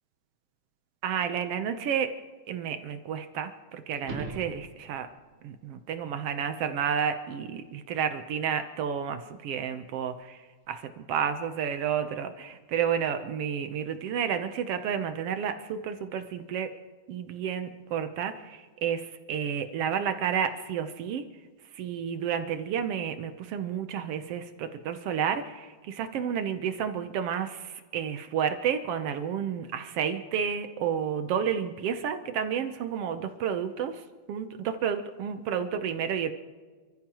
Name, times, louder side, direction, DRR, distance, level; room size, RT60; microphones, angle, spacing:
voice 1, 1.0-2.1 2.5-5.1 5.4-10.4 10.7-16.7 17.1-21.2 21.7-34.0 34.3-36.3, right 8 dB, 70° right, 8 dB, 1.5 m, -31 dB
sound 1, 4.0-5.2 10.1-10.2, right 3 dB, 40° right, 1.7 m, -40 dB
28.5 x 14.5 x 3.0 m, 1.4 s
omnidirectional pair, 3.5 m